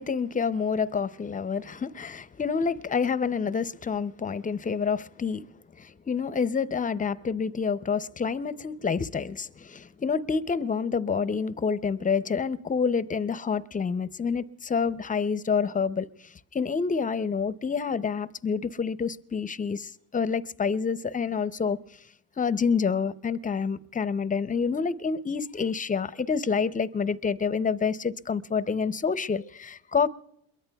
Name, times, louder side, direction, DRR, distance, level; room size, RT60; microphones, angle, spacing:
voice 1, 0.0-5.5 5.8-21.8 22.4-30.1, left 5 dB, 20° left, 0.5 m, -28 dB
28.0 x 22.5 x 2.3 m
supercardioid pair, 85°, 39 cm